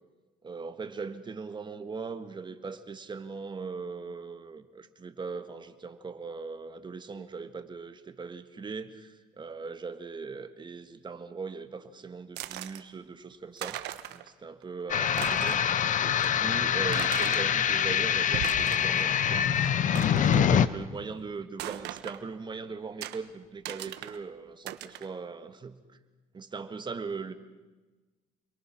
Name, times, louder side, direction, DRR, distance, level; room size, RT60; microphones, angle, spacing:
voice 1, 0.4-13.8 14.1-25.8 26.3-27.3, right 4 dB, 25° right, 9 dB, 1.7 m, -40 dB
sound 1, 12.4-12.8 13.3-13.4 13.6-14.3 14.6-14.7 15.1-15.7 16.2-16.3 16.9-17.5 18.2-19.1 19.4-19.5 19.9-20.5 21.6-22.2 23.0-23.2 23.6-24.2 24.7-25.1, right 13 dB, 85° right, 1.2 m, -38 dB
sound 2, 14.9-20.7, left 8 dB, 50° left, 0.9 m, -25 dB
29.0 x 22.5 x 6.0 m, 1.2 s
cardioid pair, 110°, 17 cm